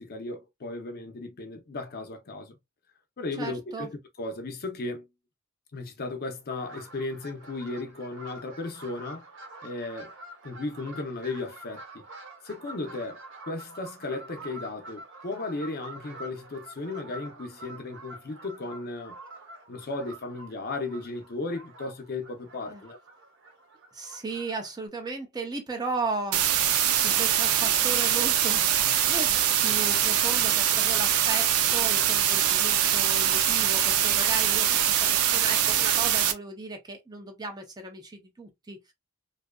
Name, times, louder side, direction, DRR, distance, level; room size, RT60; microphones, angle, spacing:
voice 1, 0.0-2.5 3.2-5.1 5.7-9.3 9.6-10.1 10.4-12.0 12.4-13.2 13.5-19.2 19.7-23.0, left 2 dB, 45° left, 0.6 m, -35 dB
voice 2, 3.4-3.9 22.7-22.8 23.9-26.4 26.9-38.9, right 3 dB, 20° right, 0.4 m, -36 dB
sound 1, 6.5-24.9, right 2 dB, 60° right, 0.8 m, -47 dB
sound 2, 26.3-36.3, right 10 dB, 85° right, 0.4 m, -23 dB
2.6 x 2.3 x 2.2 m
head